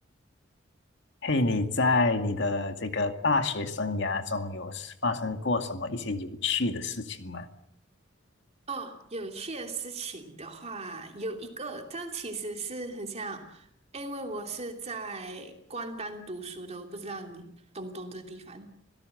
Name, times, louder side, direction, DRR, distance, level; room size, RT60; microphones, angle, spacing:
voice 1, 1.2-7.5, left 3 dB, 65° left, 6 dB, 2.3 m, -28 dB
voice 2, 8.7-18.7, right 3 dB, 35° right, 4 dB, 3.0 m, -38 dB
26.5 x 17.0 x 7.9 m, 0.72 s
head